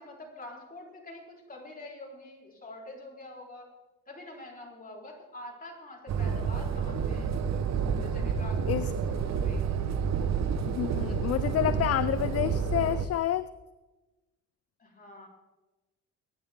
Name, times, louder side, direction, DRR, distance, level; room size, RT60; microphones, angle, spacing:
voice 1, 0.0-3.7 4.1-7.6 8.0-9.7 14.8-15.3, left 2 dB, 30° left, -1 dB, 4.3 m, -46 dB
sound 1, 6.1-13.1, right 6 dB, 60° right, 1.2 m, -29 dB
voice 2, 10.6-13.5, left 12 dB, 50° left, 15 dB, 0.5 m, -28 dB
21.5 x 9.7 x 3.7 m, 1.1 s
cardioid pair, 90°, 30 cm